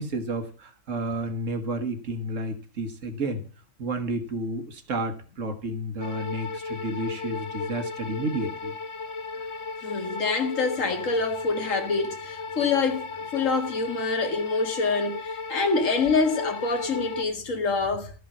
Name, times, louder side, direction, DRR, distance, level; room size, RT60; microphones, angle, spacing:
voice 1, 0.0-3.4 3.8-8.7, right 1 dB, 75° right, 1.8 m, -31 dB
sound 1, 6.0-17.2, left 4 dB, 45° left, 0.3 m, -35 dB
voice 2, 9.8-18.1, left 4 dB, 80° left, 2.0 m, -26 dB
13.0 x 5.5 x 7.3 m
omnidirectional pair, 1.3 m